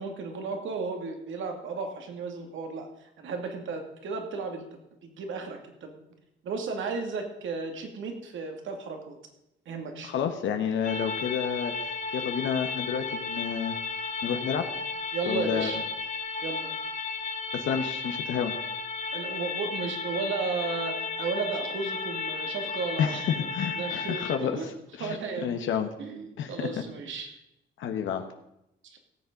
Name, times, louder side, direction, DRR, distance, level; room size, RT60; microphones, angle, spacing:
voice 1, 0.0-4.6 5.0-5.9 6.4-9.2 9.7-10.1 15.1-15.8 16.4-16.7 19.1-23.2 23.7-24.7 25.0-25.6 26.0-27.3 28.8-29.0, right 4 dB, 75° right, 4 dB, 2.3 m, -34 dB
voice 2, 10.0-13.8 14.2-14.7 15.3-15.7 17.5-18.5 23.0-25.9 26.4-26.8 27.8-28.3, left 8 dB, 75° left, 6 dB, 1.2 m, -30 dB
sound 1, 10.8-24.4, left 4 dB, 35° left, 1.5 m, -34 dB
17.0 x 7.3 x 5.2 m, 0.84 s
cardioid pair, 90°, 20 cm